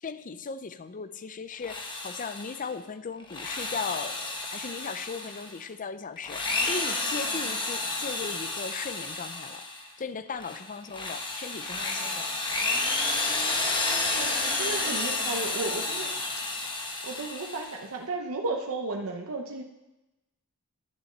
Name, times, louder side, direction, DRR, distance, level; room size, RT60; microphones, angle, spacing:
voice 1, 0.0-9.7 10.0-12.3, left 5 dB, 40° left, 12 dB, 0.5 m, -37 dB
Drill, 1.5-2.7 3.2-5.6 6.2-9.9 10.4-17.8, left 3 dB, 20° left, 1.1 m, -31 dB
voice 2, 14.1-16.1 17.0-19.6, right 3 dB, 70° right, 1 dB, 0.9 m, -33 dB
10.5 x 6.1 x 6.7 m, 0.99 s
head